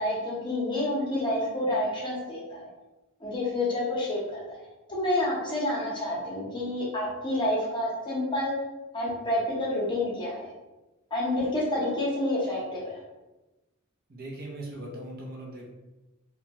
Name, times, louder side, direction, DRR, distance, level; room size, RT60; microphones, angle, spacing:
voice 1, 0.0-2.7 3.2-4.4 4.9-8.5 8.9-10.5 11.1-13.0, left 1 dB, 20° left, -5 dB, 0.8 m, -28 dB
voice 2, 14.1-15.7, right 1 dB, 45° right, -3 dB, 0.6 m, -39 dB
2.8 x 2.2 x 2.9 m, 1.0 s
head